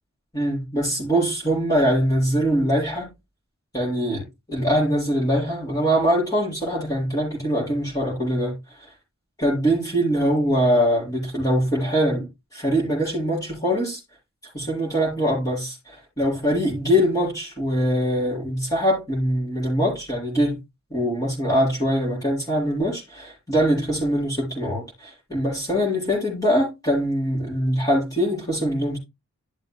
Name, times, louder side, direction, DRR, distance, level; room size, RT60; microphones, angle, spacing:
voice 1, 0.3-3.1 3.7-8.6 9.4-14.0 14.5-20.6 20.9-29.0, equal, 15° left, 6.1 m, -23 dB
12.5 x 7.4 x 2.3 m
head